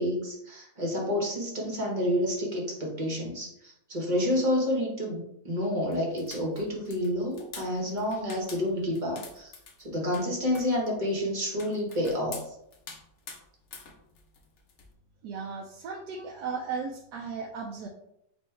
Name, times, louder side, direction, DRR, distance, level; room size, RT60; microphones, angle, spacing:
voice 1, 0.0-9.5 9.8-12.5, left 1 dB, 30° right, -2 dB, 1.0 m, -29 dB
sound 1, 5.9-14.9, left 5 dB, 60° left, 0.7 m, -47 dB
voice 2, 15.2-17.9, right 5 dB, 70° right, 0 dB, 1.0 m, -36 dB
4.1 x 2.7 x 4.4 m, 0.78 s
omnidirectional pair, 2.1 m